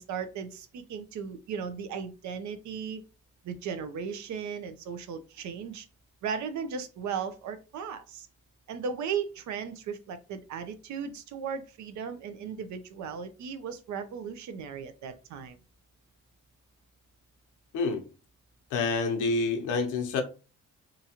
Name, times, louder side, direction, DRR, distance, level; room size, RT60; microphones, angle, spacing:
voice 1, 0.0-3.0 3.4-5.9 6.2-8.3 8.7-15.6, right 6 dB, 70° right, 0.6 m, -36 dB
voice 2, 17.7-18.1 18.7-20.2, left 4 dB, 85° left, 0.8 m, -28 dB
2.9 x 2.4 x 2.8 m
cardioid pair, 90°, 30 cm